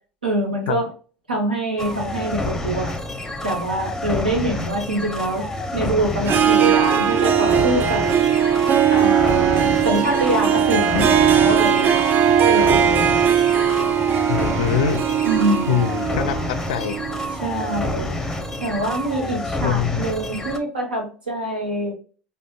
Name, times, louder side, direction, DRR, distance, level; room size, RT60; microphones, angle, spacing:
voice 1, 0.2-0.9 1.3-2.9 3.4-5.4 5.7-8.0 8.9-12.1 12.5-13.1 15.2-15.9 17.4-18.1 18.6-21.9, right 1 dB, 90° right, 0 dB, 1.2 m, -24 dB
sound 1, 1.8-20.6, left 2 dB, 10° left, 0.6 m, -28 dB
Harp, 6.2-18.1, right 9 dB, 40° right, 0.4 m, -19 dB
voice 2, 14.3-15.0 15.7-17.0 19.6-20.0, left 9 dB, 70° left, 11 dB, 0.4 m, -23 dB
4.4 x 2.6 x 2.3 m, 0.38 s
figure-of-eight pair, 75°, 5 cm